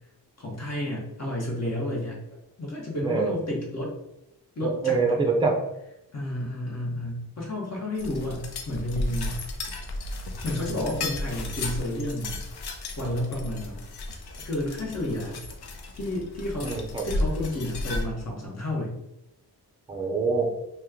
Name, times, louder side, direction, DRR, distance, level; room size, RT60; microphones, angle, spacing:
voice 1, 0.4-3.9 4.5-5.0 6.1-9.4 10.4-12.4 13.0-13.8 14.4-15.4 15.9-16.7 17.0-19.0, left 1 dB, 40° left, -3 dB, 1.1 m, -31 dB
voice 2, 4.6-5.6 16.6-17.0 19.9-20.5, right 4 dB, 10° right, 2 dB, 0.5 m, -25 dB
sound 1, 8.0-18.0, left 2 dB, 70° left, 0.6 m, -34 dB
3.0 x 2.3 x 3.6 m, 0.86 s
wide cardioid pair, 105°, 40 cm